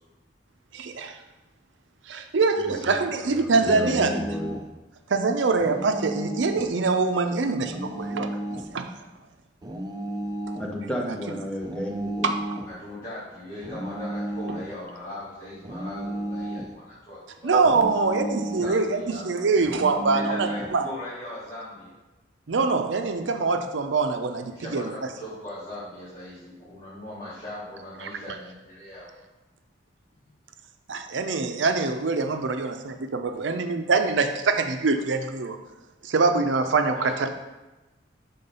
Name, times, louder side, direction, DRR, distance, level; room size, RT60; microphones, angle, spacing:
voice 1, 0.7-1.2 2.1-4.2 5.1-8.9 11.0-11.1 12.2-12.4 17.4-20.9 22.5-25.1 28.0-28.4 30.9-35.6 36.0-37.3, right 4 dB, 70° right, 7 dB, 0.5 m, -24 dB
voice 2, 2.6-4.6 10.6-12.3, equal, 5° left, -2 dB, 0.9 m, -33 dB
sound 1, 3.6-4.7 5.6-6.7 7.6-8.7 9.6-10.7 11.6-12.8 13.6-14.8 15.6-16.8 17.6-18.8 19.7-20.8, right 1 dB, 20° right, 0.5 m, -33 dB
voice 3, 12.7-17.6 17.9-18.0 18.6-19.2 20.1-21.9 24.5-29.1 30.2-30.3 36.9-37.1, left 1 dB, 25° left, -13 dB, 1.9 m, -39 dB
5.7 x 3.8 x 5.4 m, 1.1 s
head